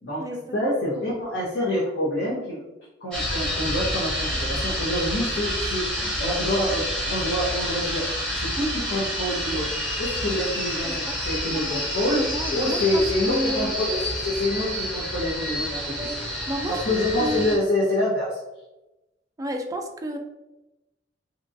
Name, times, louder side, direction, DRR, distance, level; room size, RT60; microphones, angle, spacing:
voice 1, 0.5-2.6 3.0-8.1 8.4-16.3 16.7-18.4, left 1 dB, 65° left, -7 dB, 0.8 m, -27 dB
sound 1, 3.1-17.6, equal, 5° left, 0.9 m, -29 dB
voice 2, 10.8-11.8 12.1-13.8 15.9-16.8 17.2-17.6 19.4-20.2, equal, 20° right, 2 dB, 0.3 m, -32 dB
2.8 x 2.4 x 2.6 m, 0.98 s
head